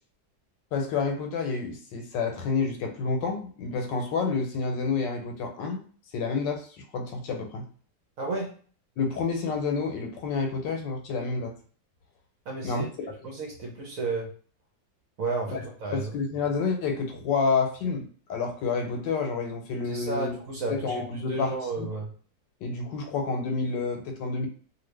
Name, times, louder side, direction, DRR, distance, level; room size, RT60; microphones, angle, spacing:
voice 1, 0.7-5.8 6.1-7.6 9.0-11.5 12.6-12.9 13.2-13.3 15.5-15.6 15.9-20.4 20.7-21.9 22.6-24.5, left 4 dB, 80° left, 4 dB, 1.3 m, -29 dB
voice 2, 8.2-8.5 12.5-14.3 15.2-16.1 19.8-22.1, right 3 dB, 60° right, 0 dB, 1.0 m, -32 dB
2.7 x 2.7 x 3.2 m, 0.43 s
omnidirectional pair, 2.0 m